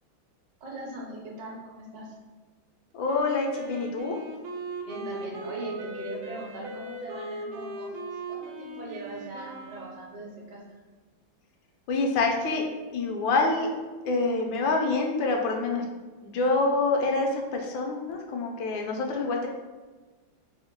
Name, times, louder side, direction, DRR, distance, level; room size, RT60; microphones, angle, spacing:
voice 1, 0.6-2.1 4.8-10.8, right 1 dB, 60° right, -3 dB, 1.2 m, -40 dB
voice 2, 2.9-4.2 11.9-12.6 12.9-13.7 14.1-15.8 16.2-19.5, left 3 dB, 85° left, 2 dB, 1.4 m, -26 dB
Wind instrument woodwind instrument, 3.0-10.2, right 2 dB, 85° right, 0.7 m, -39 dB
3.5 x 2.1 x 4.3 m, 1.3 s
omnidirectional pair, 2.0 m